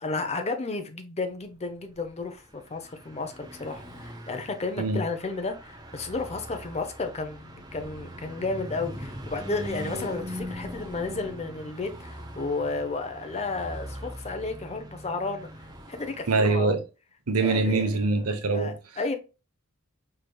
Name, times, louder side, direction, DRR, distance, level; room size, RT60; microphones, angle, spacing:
voice 1, 0.0-15.5 15.9-16.8 17.4-18.2 18.5-19.2, left 3 dB, 30° left, 0.6 m, -33 dB
Car passing by / Truck, 2.0-16.4, equal, 20° right, 0.8 m, -41 dB
voice 2, 16.3-16.8 17.3-18.7, right 3 dB, 80° right, 0.8 m, -24 dB
4.8 x 3.4 x 2.2 m
head